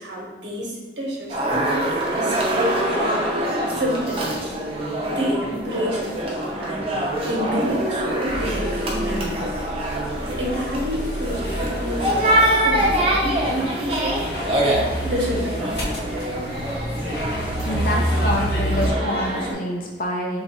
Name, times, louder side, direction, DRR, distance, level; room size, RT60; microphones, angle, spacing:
voice 1, 0.0-4.5 5.1-9.7 10.4-12.1 12.6-14.2 15.0-15.9, equal, 80° right, -2 dB, 0.9 m, -29 dB
sound 1, 1.2-1.3 1.5-5.6 6.9-10.9, right 1 dB, 5° left, 1.0 m, -33 dB
sound 2, 1.3-19.5, right 1 dB, 30° right, 0.6 m, -25 dB
sound 3, 8.3-18.9, equal, 70° left, 0.9 m, -28 dB
voice 2, 17.7-20.4, left 1 dB, 50° left, -1 dB, 0.5 m, -26 dB
3.0 x 2.3 x 4.1 m, 1.3 s
head